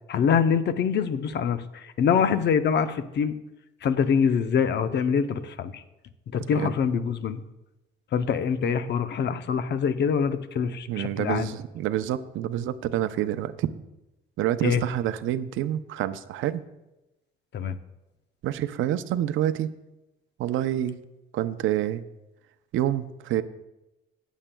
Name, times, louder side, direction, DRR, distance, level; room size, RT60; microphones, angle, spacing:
voice 1, 0.1-3.3 3.8-5.8 6.3-7.4 8.1-11.5 14.6-14.8 17.5-17.8, left 7 dB, 60° left, 11 dB, 0.7 m, -24 dB
voice 2, 10.9-13.7 14.4-16.6 18.4-19.7 20.4-21.0 21.3-22.0 22.7-23.4, right 12 dB, 85° right, 12 dB, 0.6 m, -27 dB
19.0 x 7.3 x 2.3 m, 0.98 s
cardioid pair, 90°, 20 cm